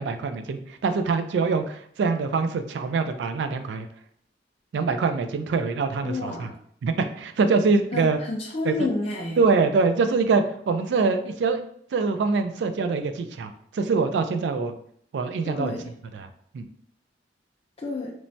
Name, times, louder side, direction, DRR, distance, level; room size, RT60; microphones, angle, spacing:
voice 1, 0.0-3.9 4.7-6.5 6.8-8.2 8.6-8.9 9.4-11.6 11.9-14.7 15.1-15.7 16.1-16.3 16.5-16.6, right 4 dB, 75° right, 9 dB, 0.3 m, -24 dB
voice 2, 6.0-6.6 7.9-9.4 15.4-15.9 17.8-18.1, left 3 dB, 35° left, -2 dB, 0.4 m, -30 dB
3.0 x 2.1 x 2.6 m, 0.63 s
head